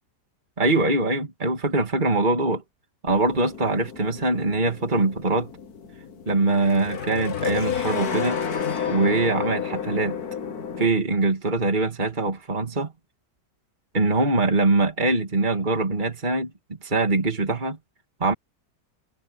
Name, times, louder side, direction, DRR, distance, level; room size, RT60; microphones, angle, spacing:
voice 1, 0.6-2.6 3.0-5.5 6.3-8.4 8.9-10.2 10.8-12.9 13.9-16.5 16.8-17.8 18.2-18.3, right 2 dB, 25° right, 2.8 m, -23 dB
sound 1, 3.1-10.9, left 7 dB, 60° left, 2.2 m, -31 dB
omnidirectional pair, 1.9 m